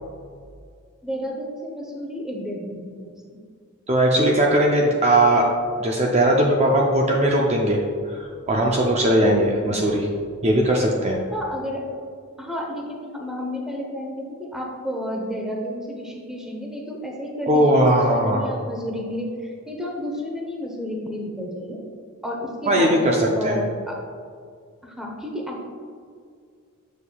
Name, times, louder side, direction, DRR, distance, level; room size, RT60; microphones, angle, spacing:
voice 1, 1.0-3.1 9.2-9.4 11.3-11.9 12.4-21.8 22.2-24.0 24.8-25.6, left 1 dB, 5° right, 0 dB, 0.8 m, -31 dB
voice 2, 3.9-5.5 5.8-7.8 8.1-10.1 10.4-11.2 17.5-18.4 22.7-23.6, right 1 dB, 30° right, -1 dB, 0.5 m, -19 dB
7.1 x 6.4 x 2.3 m, 2.2 s
head